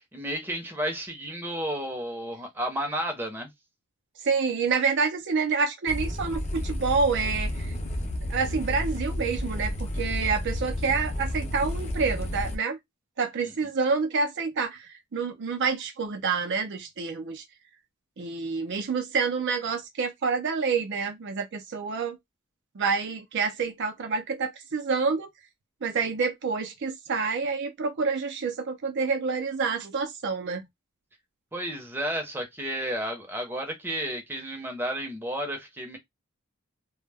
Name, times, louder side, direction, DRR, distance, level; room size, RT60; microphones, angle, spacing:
voice 1, 0.1-3.5 13.4-13.5 31.5-36.0, right 1 dB, 10° right, 0.7 m, -32 dB
voice 2, 4.2-7.8 8.3-12.8 13.2-17.4 18.2-22.2 22.7-25.3 25.8-30.7, right 5 dB, 60° right, 0.5 m, -28 dB
sound 1, 5.9-12.5, left 1 dB, 35° left, 0.5 m, -31 dB
2.1 x 2.1 x 3.3 m
head